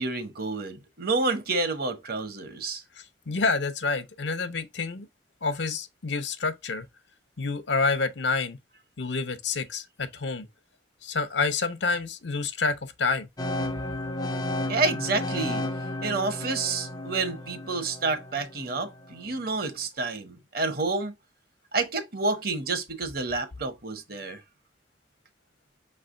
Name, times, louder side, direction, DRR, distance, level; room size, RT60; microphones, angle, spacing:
voice 1, 0.0-2.8 14.7-15.6 16.0-21.1 21.7-24.4, right 3 dB, 55° right, 0.9 m, -29 dB
voice 2, 3.3-5.1 5.4-6.9 7.4-8.6 9.0-10.5 11.0-13.3, left 4 dB, 80° left, 0.7 m, -28 dB
sound 1, 13.4-19.3, left 1 dB, 20° left, 0.5 m, -33 dB
5.7 x 3.3 x 2.5 m
head